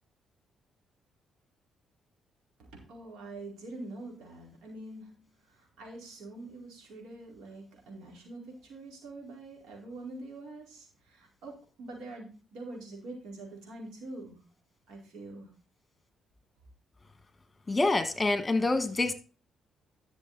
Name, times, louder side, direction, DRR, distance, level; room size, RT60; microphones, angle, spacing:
voice 1, 2.6-14.4 14.9-15.5, right 2 dB, 85° right, -1 dB, 4.4 m, -45 dB
voice 2, 17.7-19.1, left 2 dB, 20° left, 9 dB, 1.6 m, -26 dB
11.5 x 6.9 x 4.0 m, 0.35 s
cardioid pair, 90°, 0 cm